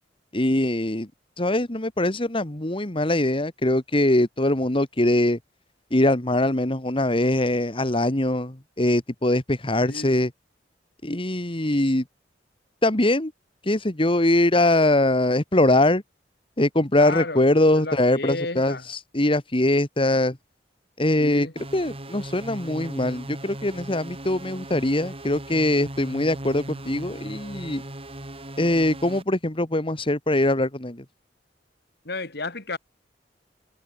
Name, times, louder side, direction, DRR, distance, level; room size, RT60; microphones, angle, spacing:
voice 1, 0.3-1.1 1.4-5.4 5.9-10.3 11.0-12.0 12.8-13.3 13.6-16.0 16.6-20.4 21.0-21.5 21.7-27.8 28.6-31.0, left 1 dB, 30° left, 2.0 m, -22 dB
voice 2, 9.9-10.2 17.0-18.9 21.2-21.5 32.1-32.8, left 2 dB, 60° left, 5.4 m, -32 dB
sound 1, 21.6-29.2, right 1 dB, 35° right, 6.4 m, -38 dB
head